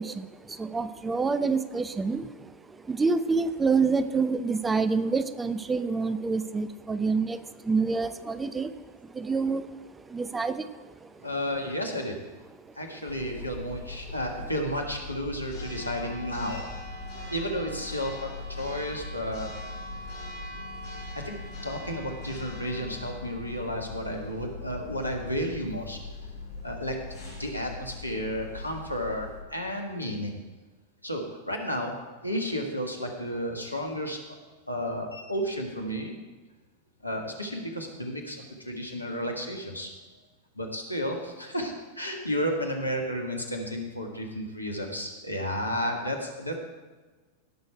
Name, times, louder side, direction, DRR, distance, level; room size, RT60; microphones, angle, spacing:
voice 1, 0.0-8.7 9.0-11.3, right 4 dB, 15° right, 13 dB, 0.5 m, -28 dB
voice 2, 11.2-12.1 12.8-17.0 17.3-19.5 21.1-21.4 21.6-26.3 26.6-26.9 27.2-30.4 31.0-31.9 32.2-34.4 34.7-36.1 37.0-39.9 40.5-46.5, equal, 85° left, 2 dB, 1.7 m, -32 dB
Church bell, 13.1-29.4, left 3 dB, 55° left, 4.3 m, -40 dB
17.0 x 6.4 x 4.6 m, 1.3 s
figure-of-eight pair, 90°, 0 cm